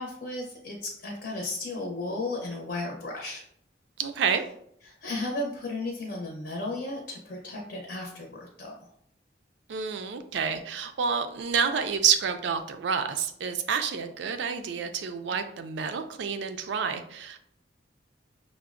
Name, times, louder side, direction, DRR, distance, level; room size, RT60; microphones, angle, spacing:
voice 1, 0.0-3.4 4.8-8.7, left 2 dB, 55° left, -1 dB, 0.6 m, -34 dB
voice 2, 4.0-4.4 9.7-17.4, right 6 dB, 75° right, 8 dB, 0.4 m, -28 dB
5.6 x 2.0 x 2.4 m, 0.70 s
head